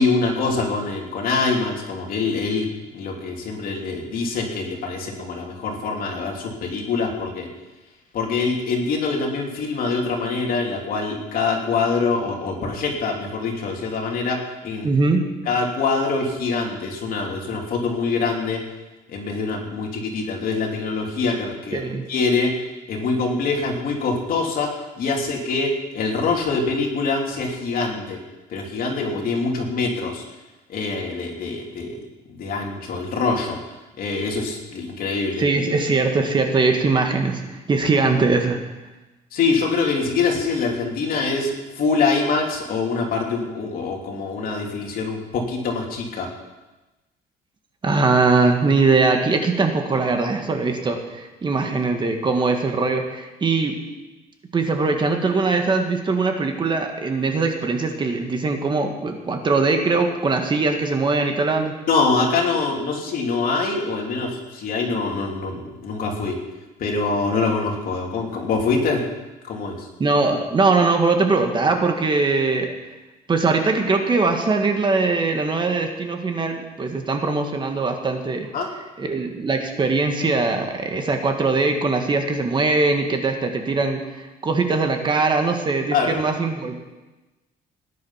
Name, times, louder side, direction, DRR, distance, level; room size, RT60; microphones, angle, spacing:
voice 1, 0.0-2.7 2.9-7.5 8.1-14.9 15.4-18.6 19.1-21.8 22.1-22.5 22.9-28.2 28.5-30.2 30.7-32.0 32.3-33.6 34.0-35.4 39.3-46.3 61.9-66.4 66.8-69.0 69.4-69.9 78.5-78.7 85.9-86.2, left 4 dB, 60° left, 0 dB, 3.1 m, -24 dB
voice 2, 14.8-15.3 21.7-22.0 35.4-38.6 47.8-53.7 54.5-61.7 70.0-72.7 73.3-78.5 79.0-86.8, right 3 dB, 30° right, 4 dB, 1.7 m, -21 dB
18.5 x 10.5 x 5.8 m, 1.1 s
cardioid pair, 140°, 16 cm